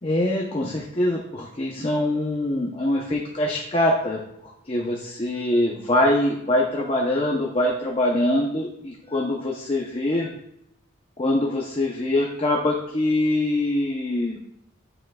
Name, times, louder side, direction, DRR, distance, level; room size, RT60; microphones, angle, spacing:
voice 1, 0.0-4.2 4.7-10.3 11.2-14.4, left 1 dB, 25° left, -1 dB, 0.7 m, -23 dB
8.9 x 6.4 x 2.4 m, 0.76 s
head